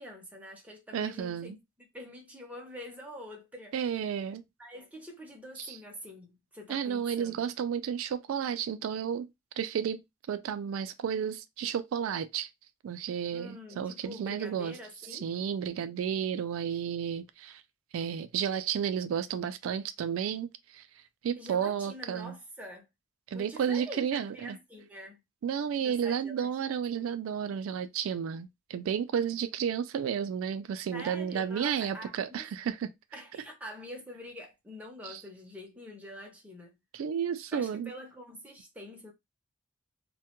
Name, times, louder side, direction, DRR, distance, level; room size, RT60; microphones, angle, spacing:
voice 1, 0.0-3.7 4.6-7.4 13.3-15.3 21.4-22.9 23.3-25.2 25.8-26.5 27.0-27.2 30.9-32.5 33.1-36.7 37.5-39.1, equal, 5° right, 0.6 m, -46 dB
voice 2, 0.9-1.6 3.7-4.4 5.6-5.8 6.7-9.3 9.6-10.0 10.3-12.5 12.8-14.7 15.1-17.6 17.9-20.9 21.2-22.3 23.3-24.6 25.4-32.9 35.0-35.2 36.9-37.9, right 8 dB, 90° right, 0.3 m, -32 dB
2.2 x 2.1 x 2.8 m
head